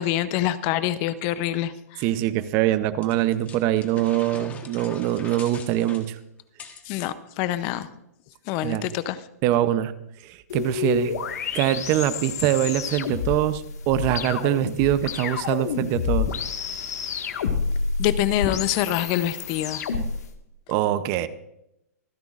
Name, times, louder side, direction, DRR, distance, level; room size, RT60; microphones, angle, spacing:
voice 1, 0.0-2.0 6.9-7.9 8.5-9.2 18.0-19.8, left 13 dB, 30° left, 14 dB, 0.6 m, -26 dB
voice 2, 2.0-6.2 8.6-8.9 9.4-9.9 10.2-11.1 11.5-16.3 20.7-21.3, right 13 dB, 30° right, 14 dB, 0.6 m, -23 dB
sound 1, 3.0-6.9, left 6 dB, 15° left, 1.2 m, -42 dB
sound 2, 10.5-20.3, left 6 dB, 75° left, 1.6 m, -29 dB
26.5 x 10.5 x 2.5 m, 0.82 s
hypercardioid pair, 155°, 9 cm